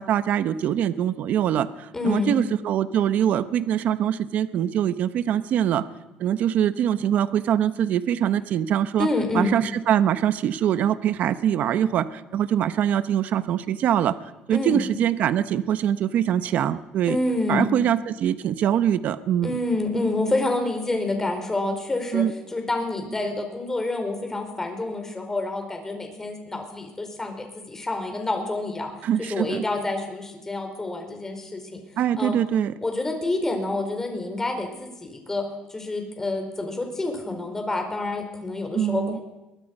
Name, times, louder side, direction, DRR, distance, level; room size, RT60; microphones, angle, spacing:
voice 1, 0.0-5.8 6.2-9.1 9.3-14.2 14.5-17.2 17.5-19.6 22.1-22.3 29.0-29.6 32.0-32.7 38.7-39.2, right 10 dB, 60° right, 13 dB, 1.0 m, -23 dB
voice 2, 1.9-2.3 9.0-9.5 14.5-14.8 17.1-17.6 19.4-28.9 29.2-31.8 32.2-32.4 32.8-35.4 35.7-39.2, left 2 dB, 15° left, 4 dB, 4.7 m, -28 dB
22.5 x 22.5 x 5.5 m, 1.0 s
cardioid pair, 125°, 3 cm